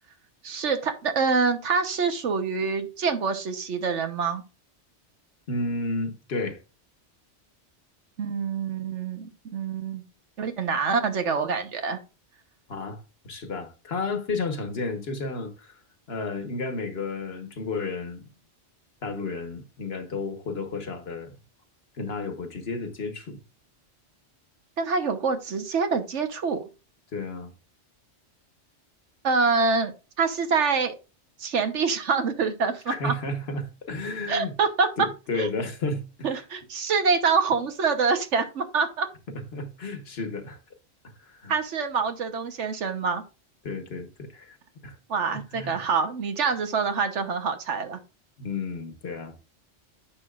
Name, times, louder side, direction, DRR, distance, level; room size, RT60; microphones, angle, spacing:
voice 1, 0.4-4.4 8.2-10.0 10.4-12.0 24.8-26.6 29.2-29.9 30.2-30.9 31.4-33.1 34.3-34.9 35.4-35.5 36.2-39.1 41.5-43.2 45.1-48.0, right 5 dB, 80° right, 1.4 m, -26 dB
voice 2, 5.5-6.6 12.7-15.8 16.1-18.2 19.0-21.3 22.0-23.4 27.1-27.5 32.9-34.5 35.0-36.4 39.3-40.6 41.2-41.5 43.6-44.6 44.8-44.9 45.3-45.8 48.4-49.3, left 3 dB, 60° left, 1.4 m, -32 dB
10.5 x 6.6 x 2.4 m
omnidirectional pair, 1.2 m